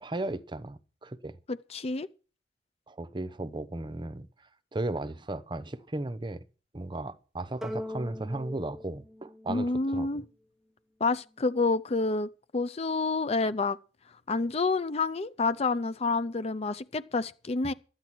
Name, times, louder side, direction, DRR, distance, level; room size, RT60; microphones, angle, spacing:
voice 1, 0.0-1.4 2.9-4.3 4.7-6.4 6.7-10.1, right 2 dB, 25° right, 0.8 m, -35 dB
voice 2, 1.5-2.1 9.5-10.2 11.0-13.8 14.3-17.7, left 3 dB, 35° left, 0.5 m, -28 dB
sound 1, 7.6-10.2, left 1 dB, ahead, 1.2 m, -40 dB
12.5 x 9.5 x 6.0 m
head